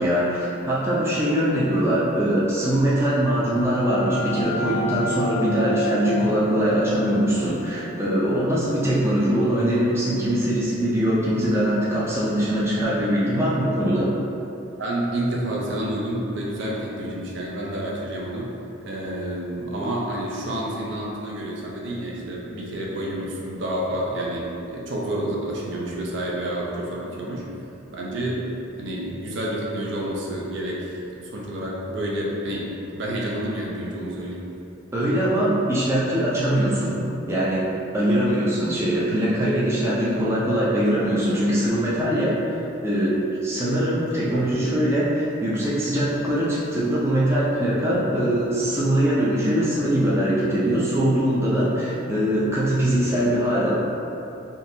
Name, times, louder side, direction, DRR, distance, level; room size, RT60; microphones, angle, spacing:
voice 1, 0.0-14.1 34.9-37.0 37.3-37.6 37.9-53.7, equal, 15° right, -8 dB, 0.4 m, -22 dB
sound 1, 3.1-8.6, equal, 80° left, 0.4 m, -30 dB
voice 2, 14.8-18.5 18.9-27.4 27.9-28.5 28.8-30.9 31.2-34.4 44.3-44.4, right 1 dB, 60° right, -4 dB, 0.6 m, -29 dB
3.7 x 2.7 x 2.7 m, 2.8 s
head